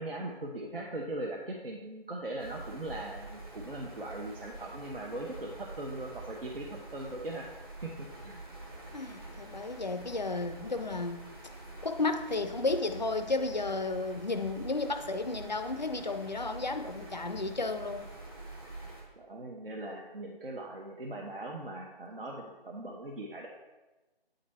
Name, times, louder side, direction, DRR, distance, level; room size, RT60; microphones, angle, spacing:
voice 1, 0.0-7.5 7.8-8.4 19.2-23.5, right 2 dB, 65° right, -1 dB, 1.0 m, -40 dB
sound 1, 2.4-19.0, right 2 dB, 25° right, 1.0 m, -46 dB
voice 2, 8.9-11.2 11.8-18.1, left 3 dB, 45° left, 9 dB, 0.5 m, -33 dB
8.8 x 4.0 x 4.2 m, 1.1 s
figure-of-eight pair, 175°, 31 cm